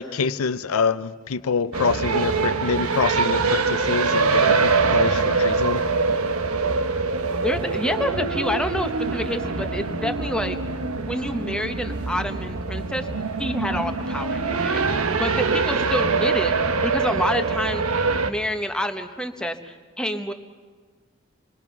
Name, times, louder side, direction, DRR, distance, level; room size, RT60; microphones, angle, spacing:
voice 1, 0.0-5.8, left 5 dB, 90° left, 14 dB, 0.6 m, -26 dB
sound 1, 1.7-18.3, right 4 dB, 90° right, 1.2 m, -24 dB
voice 2, 7.4-10.6 11.0-13.1 13.4-16.5 16.8-20.3, equal, 5° left, 6 dB, 1.1 m, -28 dB
28.5 x 22.5 x 6.1 m, 1.5 s
head